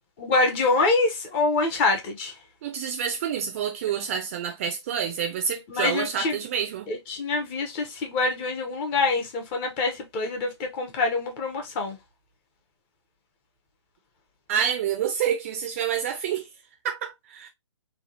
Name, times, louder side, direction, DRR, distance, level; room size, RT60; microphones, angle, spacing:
voice 1, 0.2-2.3 5.7-6.4 6.9-12.0, left 3 dB, 25° left, 0.8 m, -25 dB
voice 2, 2.6-6.9 14.5-16.5 16.8-17.5, right 8 dB, 30° right, 0.5 m, -28 dB
3.4 x 2.3 x 2.7 m
figure-of-eight pair, 130°, 16 cm